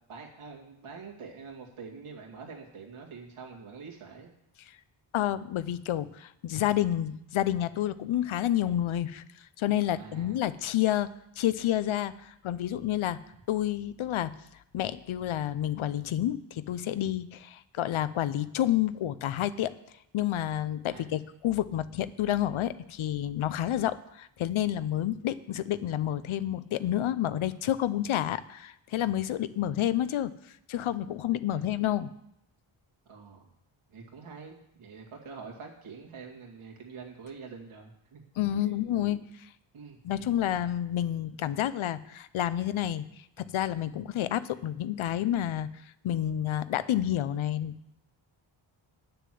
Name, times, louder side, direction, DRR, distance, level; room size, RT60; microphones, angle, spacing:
voice 1, 0.1-4.3 10.0-10.4 20.9-21.1 31.5-31.7 33.1-33.5 33.9-38.2 38.6-38.8 39.7-40.3, right 5 dB, 85° right, -1 dB, 2.4 m, -46 dB
voice 2, 5.1-9.2 9.6-11.1 11.4-13.2 13.5-14.3 14.7-19.7 20.1-30.3 30.7-32.1 38.4-39.2 40.0-43.1 43.4-45.7 46.0-48.0, left 12 dB, 75° left, 15 dB, 0.7 m, -29 dB
9.5 x 6.8 x 7.6 m, 0.79 s
wide cardioid pair, 120°, 48 cm